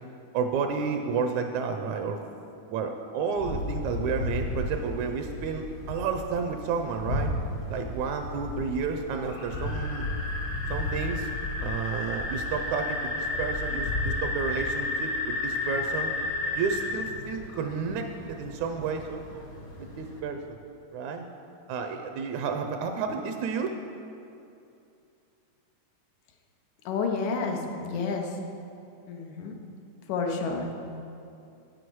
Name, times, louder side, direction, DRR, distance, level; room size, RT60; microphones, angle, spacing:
voice 1, 0.3-2.2 2.7-7.3 7.7-10.1 10.7-11.3 11.6-16.1 16.6-19.5 19.8-20.6 20.9-21.3 21.7-23.7, right 5 dB, 80° right, 5 dB, 1.9 m, -31 dB
sound 1, 3.4-20.2, left 2 dB, 55° left, 1.0 m, -32 dB
voice 2, 26.9-28.4 29.1-29.5 30.1-30.8, left 4 dB, 85° left, 2 dB, 2.3 m, -30 dB
8.8 x 7.8 x 4.6 m, 2.7 s
omnidirectional pair, 3.3 m